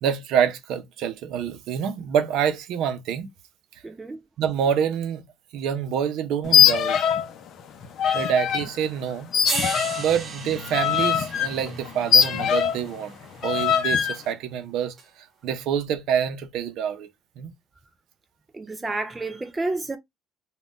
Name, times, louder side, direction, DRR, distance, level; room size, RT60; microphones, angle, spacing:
voice 1, 0.0-3.3 4.4-5.2 5.5-7.0 8.1-9.3 10.0-13.1 13.4-14.9 15.4-17.1 17.4-17.5, right 8 dB, 70° right, 0.6 m, -26 dB
voice 2, 3.8-4.2 18.5-20.0, right 2 dB, 15° right, 0.3 m, -30 dB
sound 1, 6.4-7.3 7.6-8.7 9.3-12.9 13.4-14.2, left 8 dB, 50° left, 0.5 m, -21 dB
sound 2, 8.8-8.9 9.4-13.6 15.0-15.1, right 5 dB, 35° right, 0.8 m, -36 dB
2.5 x 2.2 x 3.5 m
cardioid pair, 150°, 0 cm